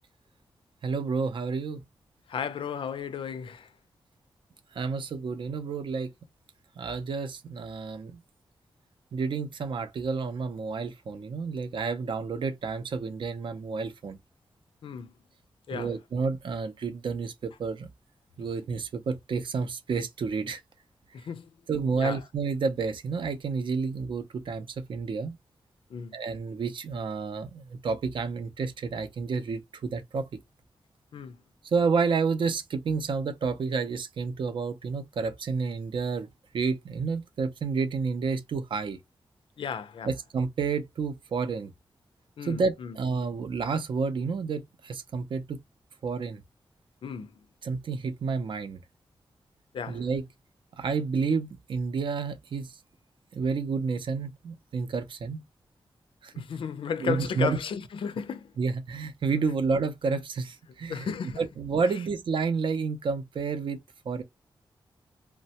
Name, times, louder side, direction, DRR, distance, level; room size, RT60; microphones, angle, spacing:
voice 1, 0.8-1.8 4.7-6.1 6.8-8.2 9.1-14.2 15.7-17.9 18.4-20.6 21.7-25.4 26.1-30.3 31.6-36.3 36.5-39.0 40.0-41.7 42.4-45.6 46.0-46.4 47.6-48.8 49.9-50.2 50.8-52.8 53.3-55.4 56.2-56.5 57.0-57.6 58.6-61.0 61.4-63.8 64.1-64.2, right 5 dB, 65° right, 0.5 m, -30 dB
voice 2, 2.3-3.7 14.8-15.1 15.7-15.9 21.1-21.5 22.0-22.2 25.9-26.2 31.1-31.4 39.6-40.1 42.4-43.0 47.0-47.4 49.7-50.0 56.3-58.5 59.5-59.6 60.9-61.4 61.8-61.9, left 7 dB, 75° left, 0.4 m, -34 dB
3.1 x 2.1 x 2.7 m
wide cardioid pair, 160°, 9 cm